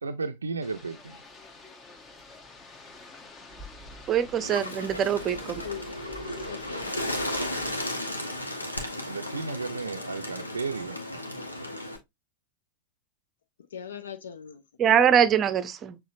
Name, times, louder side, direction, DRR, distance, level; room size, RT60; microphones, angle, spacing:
voice 1, 0.0-1.2 8.6-8.7 9.0-11.5, right 4 dB, 75° right, 0.4 m, -34 dB
sound 1, 0.6-7.8, left 2 dB, 25° left, 0.9 m, -47 dB
voice 2, 4.1-5.6 14.8-16.0, right 8 dB, 30° right, 0.6 m, -23 dB
Bird, 4.4-12.0, left 1 dB, 85° left, 0.9 m, -34 dB
voice 3, 5.6-6.1 6.3-7.4 13.6-14.6, left 8 dB, 65° left, 0.4 m, -41 dB
6.5 x 3.0 x 2.5 m
figure-of-eight pair, 90°, 0 cm